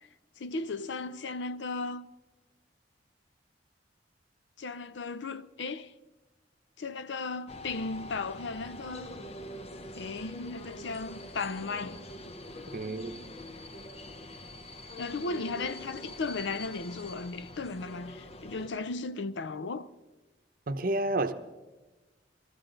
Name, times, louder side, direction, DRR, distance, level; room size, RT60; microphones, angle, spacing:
voice 1, 0.4-2.1 4.6-5.9 6.8-9.1 10.0-12.0 15.0-19.9, left 3 dB, 80° left, 0.6 m, -36 dB
sound 1, 7.5-18.7, left 1 dB, 35° left, 0.7 m, -44 dB
voice 2, 12.7-13.2 20.7-21.3, right 2 dB, 55° right, 0.8 m, -30 dB
22.5 x 14.0 x 3.9 m
head